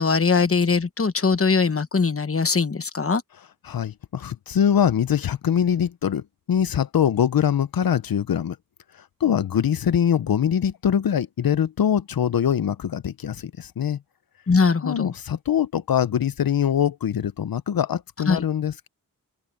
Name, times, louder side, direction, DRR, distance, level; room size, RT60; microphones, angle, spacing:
voice 1, 0.0-3.2 14.5-15.1 18.3-18.4, left 4 dB, 40° left, 1.1 m, -21 dB
voice 2, 3.6-6.2 6.5-8.6 8.9-14.0 14.8-18.9, left 9 dB, 85° left, 0.6 m, -23 dB
open air
wide cardioid pair, 80°, 34 cm